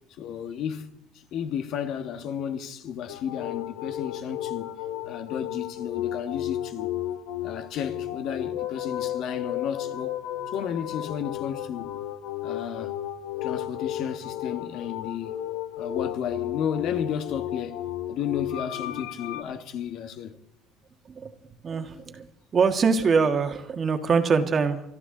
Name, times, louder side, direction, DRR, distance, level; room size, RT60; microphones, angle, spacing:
voice 1, 0.2-0.9 1.1-4.8 5.1-6.9 7.4-10.2 10.5-12.0 12.4-12.9 13.4-15.4 15.8-20.4, left 8 dB, 60° left, 1.3 m, -33 dB
sound 1, 3.1-19.4, left 12 dB, 85° left, 1.1 m, -33 dB
voice 2, 21.6-22.3 22.5-24.8, right 5 dB, 35° right, 1.6 m, -23 dB
25.5 x 12.0 x 3.9 m
supercardioid pair, 110°, 0 cm